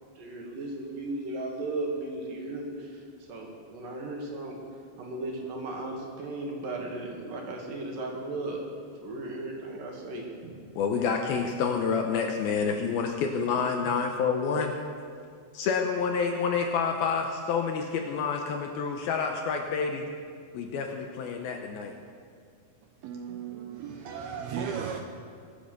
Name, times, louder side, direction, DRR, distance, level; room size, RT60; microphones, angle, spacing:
voice 1, 0.0-3.0 3.3-4.6 5.0-8.6 9.0-10.5, right 2 dB, 55° right, 0 dB, 3.3 m, -36 dB
voice 2, 10.8-14.7 15.6-20.1 20.5-21.9, left 5 dB, 75° left, 3 dB, 2.4 m, -28 dB
voice 3, 23.0-25.0, right 7 dB, 75° right, 4 dB, 2.4 m, -35 dB
23.0 x 8.4 x 6.7 m, 2.2 s
omnidirectional pair, 5.1 m